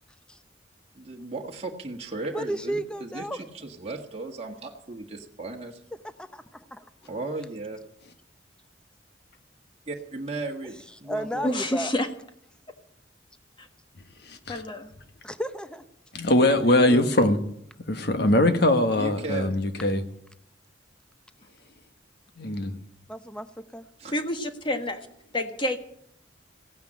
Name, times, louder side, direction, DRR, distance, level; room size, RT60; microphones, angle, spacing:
voice 1, 0.9-5.8 7.1-7.8 9.9-11.6 16.4-17.1 19.0-19.5 24.0-24.1, right 3 dB, 35° right, 1.5 m, -36 dB
voice 2, 2.3-3.4 6.0-6.9 11.0-11.9 15.2-15.8 23.1-23.8, right 1 dB, 5° left, 0.7 m, -33 dB
voice 3, 11.4-12.1 13.6-13.7 14.5-14.9 24.1-25.0 25.3-25.8, left 1 dB, 25° left, 1.5 m, -28 dB
voice 4, 14.2-14.6 16.1-17.4 17.9-20.0 22.4-22.7, left 1 dB, 60° left, 1.5 m, -22 dB
16.0 x 9.4 x 8.8 m
head